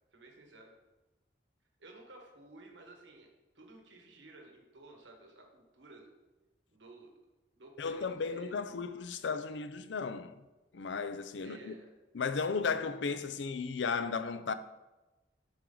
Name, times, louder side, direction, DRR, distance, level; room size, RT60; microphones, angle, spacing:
voice 1, 0.1-0.7 1.8-3.3 3.5-6.1 6.7-7.1 7.5-8.7 11.4-11.9, right 2 dB, 90° right, 1.4 m, -54 dB
voice 2, 7.8-10.4 10.7-11.7 12.1-14.5, left 5 dB, 85° left, 0.5 m, -35 dB
11.5 x 4.7 x 3.8 m
head